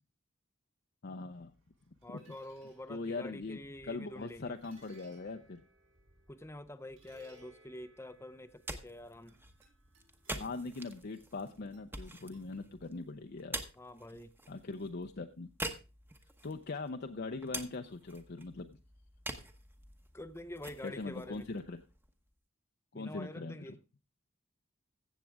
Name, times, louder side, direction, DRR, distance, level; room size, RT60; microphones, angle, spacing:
voice 1, 1.0-1.5 2.1-2.2 2.9-3.6 3.8-5.6 10.3-13.6 14.5-15.5 16.4-18.8 20.8-21.8 22.9-23.8, left 3 dB, 50° left, 0.6 m, -41 dB
sound 1, 1.3-13.4, right 1 dB, 65° right, 7.1 m, -64 dB
voice 2, 2.0-4.5 6.3-9.4 13.7-14.3 20.1-21.5 22.9-23.8, left 1 dB, 15° left, 0.7 m, -47 dB
sound 2, 8.4-22.3, right 1 dB, 10° right, 1.0 m, -47 dB
15.0 x 7.4 x 3.5 m
head